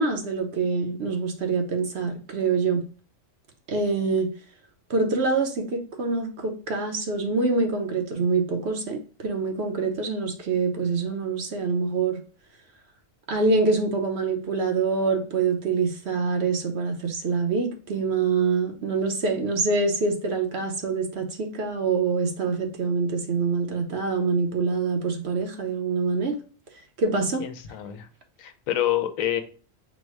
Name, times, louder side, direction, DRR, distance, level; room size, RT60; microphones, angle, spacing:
voice 1, 0.0-2.8 3.7-4.3 4.9-12.2 13.3-26.4 27.0-27.4, right 4 dB, 60° right, 0.9 m, -25 dB
voice 2, 27.4-28.1 28.4-29.4, left 12 dB, 85° left, 1.0 m, -27 dB
4.1 x 2.1 x 4.5 m
omnidirectional pair, 1.4 m